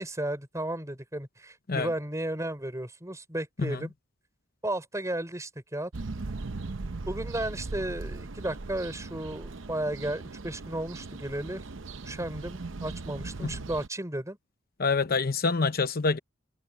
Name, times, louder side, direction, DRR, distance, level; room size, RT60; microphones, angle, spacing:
voice 1, 0.0-3.9 4.6-5.9 7.1-11.6 12.0-14.4, right 1 dB, 15° right, 5.1 m, -34 dB
sound 1, 5.9-13.9, right 3 dB, 70° right, 0.8 m, -39 dB
voice 2, 14.8-16.2, left 4 dB, 50° left, 0.8 m, -26 dB
head